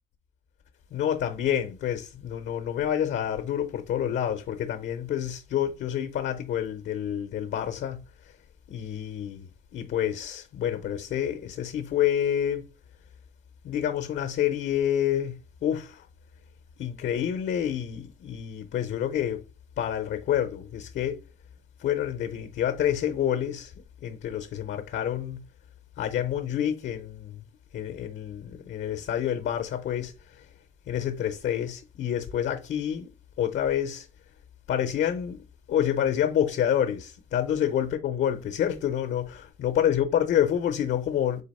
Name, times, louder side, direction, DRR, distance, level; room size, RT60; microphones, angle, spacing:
voice 1, 0.9-8.3 8.7-9.5 9.7-12.7 13.6-16.1 16.8-19.4 19.8-21.2 21.8-23.7 24.0-25.5 26.0-27.4 27.7-30.5 30.9-33.1 33.4-34.1 34.7-35.4 35.7-41.4, left 10 dB, 65° left, 0.7 m, -28 dB
3.9 x 2.9 x 4.1 m
cardioid pair, 90°, 20 cm